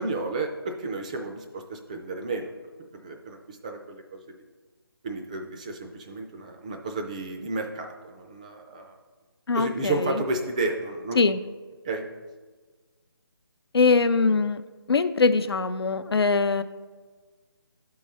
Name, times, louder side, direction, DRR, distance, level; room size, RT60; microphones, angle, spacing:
voice 1, 0.0-2.5 2.9-4.3 5.0-9.0 9.5-11.2 11.8-12.0, right 3 dB, 15° right, 4 dB, 0.4 m, -32 dB
voice 2, 9.5-9.9 11.2-11.4 13.7-14.6 14.9-16.6, left 4 dB, 80° left, 11 dB, 0.4 m, -22 dB
11.0 x 3.8 x 4.1 m, 1.4 s
figure-of-eight pair, 155°, 13 cm